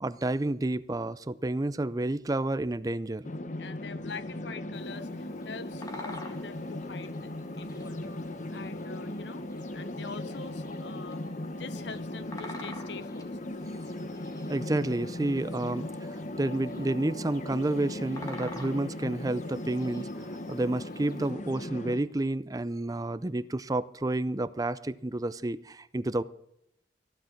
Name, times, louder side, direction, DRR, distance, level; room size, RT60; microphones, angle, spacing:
voice 1, 0.0-3.3 14.5-20.1 20.5-26.2, right 2 dB, 20° right, 0.5 m, -30 dB
sound 1, 3.2-22.0, left 1 dB, 45° left, 0.9 m, -38 dB
voice 2, 3.6-8.2 8.5-9.5 9.7-13.5, left 5 dB, 80° left, 0.8 m, -44 dB
Bird vocalization bird call bird song, 4.7-21.3, left 2 dB, 20° left, 1.8 m, -50 dB
15.5 x 10.0 x 5.8 m
head